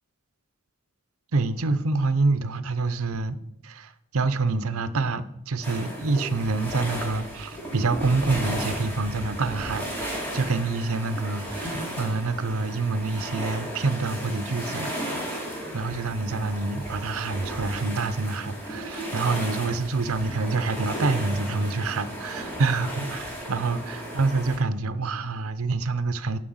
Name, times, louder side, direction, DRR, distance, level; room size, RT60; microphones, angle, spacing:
voice 1, 1.3-3.4 3.6-15.0 15.3-15.5 15.7-26.4, right 3 dB, 80° right, 13 dB, 0.7 m, -27 dB
sound 1, 5.6-24.6, equal, 10° left, 2.7 m, -35 dB
7.7 x 6.2 x 7.8 m, 0.79 s
head